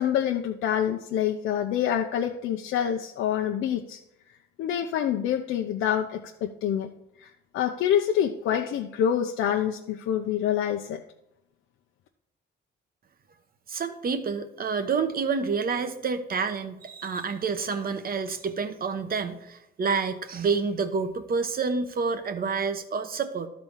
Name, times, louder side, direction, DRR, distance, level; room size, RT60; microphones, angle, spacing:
voice 1, 0.0-4.0 4.6-6.9 7.2-11.0, left 9 dB, 80° left, 3 dB, 0.7 m, -26 dB
voice 2, 13.7-23.5, right 5 dB, 50° right, 9 dB, 1.1 m, -28 dB
12.5 x 4.3 x 7.2 m, 0.87 s
cardioid pair, 90°, 20 cm